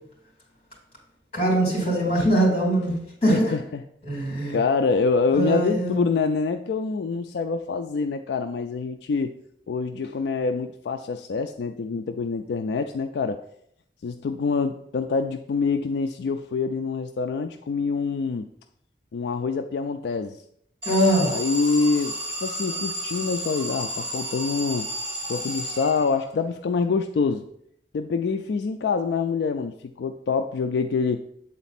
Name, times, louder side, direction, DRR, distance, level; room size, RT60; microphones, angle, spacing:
voice 1, 1.3-2.9 3.2-3.4 4.1-4.6 5.3-6.0 20.8-21.3, right 1 dB, 35° left, -2 dB, 2.9 m, -22 dB
voice 2, 3.3-3.8 4.5-9.3 9.7-13.4 14.0-18.5 19.1-20.4 21.3-24.9 25.3-27.4 27.9-31.2, left 4 dB, 65° left, 7 dB, 0.3 m, -26 dB
Alarm, 20.8-26.4, right 1 dB, 30° right, 2.4 m, -32 dB
7.9 x 4.1 x 4.2 m, 0.72 s
head